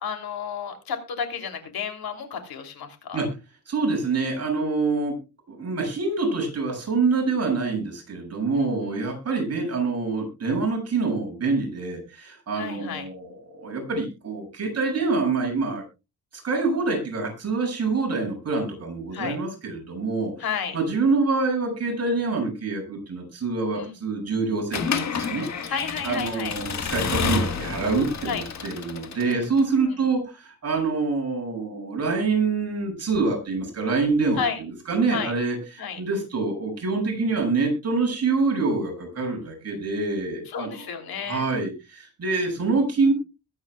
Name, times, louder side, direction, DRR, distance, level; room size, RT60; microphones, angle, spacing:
voice 1, 0.0-3.2 8.5-9.0 12.5-13.0 19.1-19.4 20.4-20.8 23.7-23.9 25.7-26.6 28.3-28.4 29.3-29.4 29.9-30.0 34.4-34.6 35.1-35.3 35.8-36.0 40.5-41.5, left 6 dB, 90° left, 5 dB, 3.2 m, -32 dB
voice 2, 3.7-5.1 5.5-15.8 16.3-20.3 20.7-25.7 26.0-40.9 41.3-43.1, right 4 dB, 45° right, 1 dB, 7.5 m, -26 dB
Accelerating revving vroom / Mechanisms, 24.7-29.6, left 5 dB, 50° left, 1.6 m, -29 dB
22.0 x 9.3 x 2.3 m, 0.28 s
wide cardioid pair, 145°, 36 cm